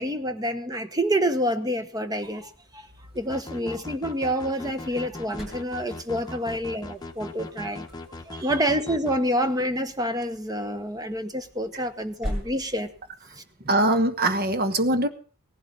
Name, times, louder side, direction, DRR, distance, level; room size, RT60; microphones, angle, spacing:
voice 1, 0.0-2.8 3.1-7.9 8.3-12.9 13.3-13.4, equal, 15° right, 1.1 m, -28 dB
sound 1, 2.1-13.3, equal, ahead, 6.9 m, -43 dB
sound 2, 3.3-9.2, left 2 dB, 20° left, 1.1 m, -39 dB
voice 2, 13.7-15.1, right 1 dB, 45° right, 1.2 m, -23 dB
17.5 x 11.5 x 5.4 m
head